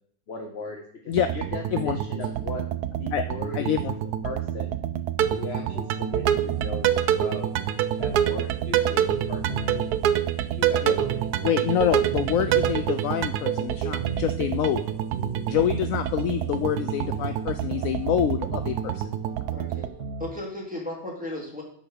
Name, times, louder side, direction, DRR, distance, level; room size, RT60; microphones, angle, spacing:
voice 1, 0.3-3.8 4.2-4.8 5.3-7.5 8.0-9.9 10.3-12.0, left 3 dB, 45° left, 2 dB, 1.1 m, -38 dB
sound 1, 1.1-19.9, right 10 dB, 85° right, 1.2 m, -27 dB
voice 2, 3.6-3.9 10.8-11.0 11.4-14.9 15.5-19.1, left 10 dB, 70° left, 9 dB, 0.9 m, -26 dB
sound 2, 5.2-20.4, right 6 dB, 50° right, 0.9 m, -38 dB
voice 3, 19.5-19.9 20.2-21.6, left 1 dB, 5° right, -4 dB, 2.8 m, -35 dB
11.0 x 4.6 x 6.5 m, 0.62 s
omnidirectional pair, 1.6 m